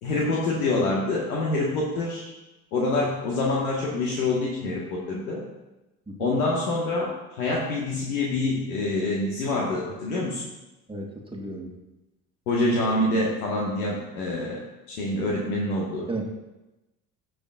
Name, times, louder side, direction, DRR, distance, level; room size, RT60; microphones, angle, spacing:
voice 1, 0.0-2.3 2.7-5.4 6.2-10.4 12.5-14.6 14.9-16.1, left 2 dB, 65° left, -3 dB, 1.6 m, -26 dB
voice 2, 10.9-11.7 16.1-16.2, right 2 dB, 10° right, 0 dB, 1.7 m, -34 dB
15.5 x 6.3 x 2.5 m, 1.0 s
figure-of-eight pair, 60°, 47 cm